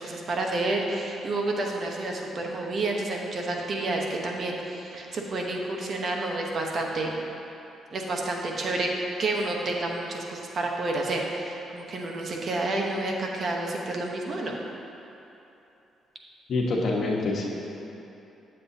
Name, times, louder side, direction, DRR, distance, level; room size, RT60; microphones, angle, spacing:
voice 1, 0.0-7.1 7.9-8.9 9.2-14.5, right 2 dB, 50° right, 0 dB, 0.9 m, -29 dB
voice 2, 16.5-17.5, left 2 dB, 60° left, -2 dB, 1.1 m, -26 dB
8.9 x 7.7 x 2.8 m, 2.9 s
cardioid pair, 90°, 0 cm